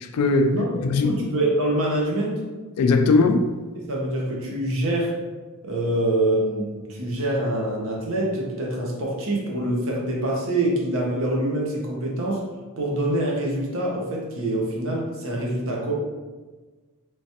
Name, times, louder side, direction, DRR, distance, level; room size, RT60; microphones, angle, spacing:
voice 1, 0.0-1.2 2.8-3.5, left 3 dB, 90° left, 7 dB, 0.4 m, -20 dB
voice 2, 1.0-2.4 3.1-3.2 3.7-5.2 5.6-12.5 12.8-15.9, right 1 dB, 65° right, -2 dB, 0.9 m, -25 dB
3.2 x 3.1 x 2.8 m, 1.3 s
head